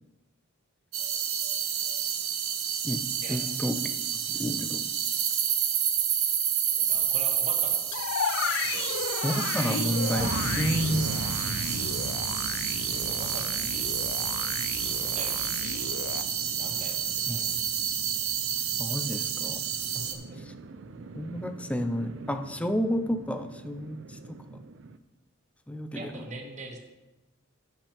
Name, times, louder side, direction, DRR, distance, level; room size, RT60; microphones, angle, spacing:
sound 1, 0.9-20.1, right 9 dB, 80° right, 1.1 m, -29 dB
voice 1, 3.3-3.8 4.1-4.8 9.2-11.1 17.3-17.4 18.8-19.6 21.1-24.6 25.7-26.1, equal, 5° left, 7 dB, 0.5 m, -30 dB
voice 2, 6.8-8.3 8.6-9.0 12.8-15.8 16.5-17.6 19.9-20.4 25.9-26.8, right 2 dB, 35° right, 2 dB, 1.3 m, -43 dB
sound 2, 7.9-16.2, left 7 dB, 60° left, 0.4 m, -34 dB
sound 3, 10.2-25.0, right 3 dB, 60° right, 0.5 m, -40 dB
15.5 x 5.8 x 3.5 m, 1.0 s
head